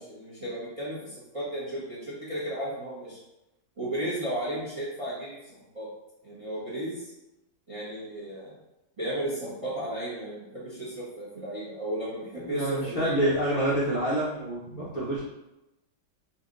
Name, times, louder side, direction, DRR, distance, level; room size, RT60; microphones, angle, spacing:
voice 1, 0.0-3.2 3.8-5.9 6.2-7.1 7.7-8.5 9.0-13.3, right 1 dB, 50° right, -8 dB, 0.4 m, -34 dB
voice 2, 12.4-15.2, right 1 dB, 90° left, -8 dB, 0.3 m, -27 dB
2.7 x 2.7 x 3.7 m, 0.95 s
omnidirectional pair, 1.9 m